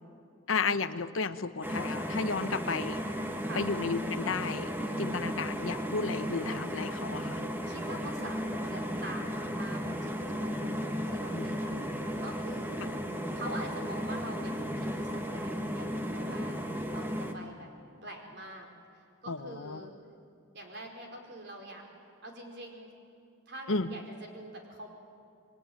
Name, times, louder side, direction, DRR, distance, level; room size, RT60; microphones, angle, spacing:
voice 1, 0.5-3.0 3.5-4.7 5.0-7.4 11.3-11.6 19.3-19.8 23.7-23.9, left 4 dB, 80° left, 11 dB, 1.0 m, -33 dB
sound 1, 1.6-17.3, equal, 10° right, 1.5 m, -35 dB
voice 2, 7.1-16.6 16.9-17.7 18.0-18.7 18.9-19.9 20.5-21.8 22.2-22.9 23.5-24.9, right 1 dB, 55° right, 2 dB, 4.6 m, -45 dB
28.0 x 21.5 x 9.4 m, 2.5 s
head